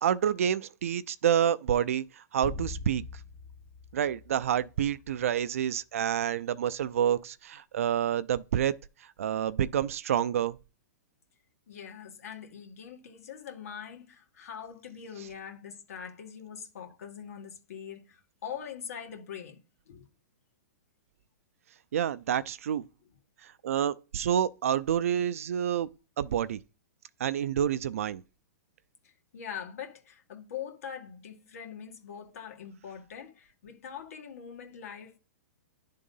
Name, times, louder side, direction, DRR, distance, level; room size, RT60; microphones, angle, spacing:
voice 1, 0.0-3.0 3.9-8.8 9.2-10.6 21.9-22.8 23.4-25.9 26.2-26.6 27.2-28.2, right 9 dB, 55° right, 0.4 m, -28 dB
sound 1, 2.4-5.1, left 3 dB, 20° left, 5.1 m, -42 dB
voice 2, 11.7-19.6 19.9-20.1 29.3-35.2, left 8 dB, 60° left, 1.8 m, -43 dB
10.5 x 3.7 x 5.5 m
hypercardioid pair, 180°, 9 cm